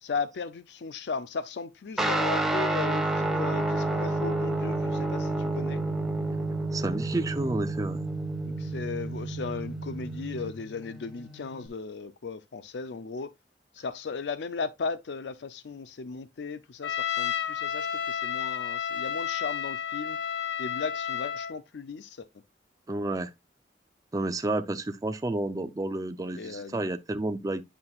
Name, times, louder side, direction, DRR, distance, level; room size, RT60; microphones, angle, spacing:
voice 1, 0.0-5.8 8.4-13.3 13.7-20.2 20.6-22.3 26.3-26.8, left 4 dB, 70° left, 0.5 m, -36 dB
Guitar, 2.0-11.7, right 2 dB, ahead, 1.0 m, -30 dB
voice 2, 6.7-8.0 22.9-23.3 24.1-27.6, right 2 dB, 20° right, 0.4 m, -30 dB
Trumpet, 16.8-21.6, left 8 dB, 90° left, 0.9 m, -31 dB
9.7 x 5.6 x 2.3 m
head